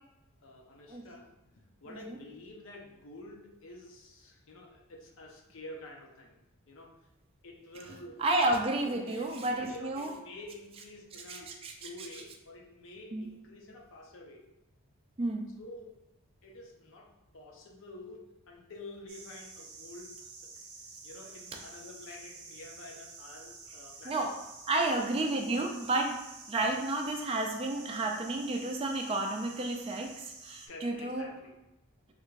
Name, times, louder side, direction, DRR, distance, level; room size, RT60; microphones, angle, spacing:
voice 1, 0.4-6.4 6.7-6.9 7.4-8.6 8.8-11.5 11.8-14.4 15.6-15.9 16.4-20.5 21.0-24.3 24.9-25.8 30.7-31.5, left 1 dB, 60° left, -1 dB, 0.6 m, -49 dB
voice 2, 8.2-10.1 11.3-11.7 13.1-13.3 15.2-15.5 24.0-24.3 24.7-26.2 26.5-30.1 30.4-31.3, right 2 dB, 25° right, 2 dB, 0.3 m, -31 dB
sound 1, 19.1-30.7, right 4 dB, 70° right, 0.6 m, -50 dB
3.3 x 2.4 x 3.2 m, 0.93 s
head